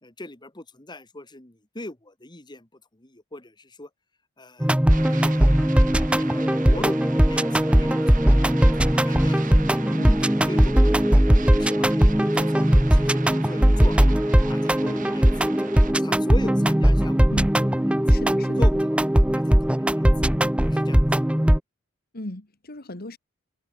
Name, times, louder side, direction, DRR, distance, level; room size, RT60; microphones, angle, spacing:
voice 1, 0.0-2.7 2.9-3.9 4.4-5.5 5.8-8.5 9.1-9.6 9.9-10.2 10.4-11.2 11.6-15.3 16.0-17.3 17.6-17.7 18.6-20.1 20.6-21.1, left 1 dB, 20° left, 1.8 m, -39 dB
sound 1, 4.6-21.6, equal, 5° right, 0.6 m, -19 dB
sound 2, 4.9-15.9, right 5 dB, 40° right, 2.0 m, -40 dB
voice 2, 18.1-18.7 22.1-23.2, left 1 dB, 45° left, 2.0 m, -36 dB
head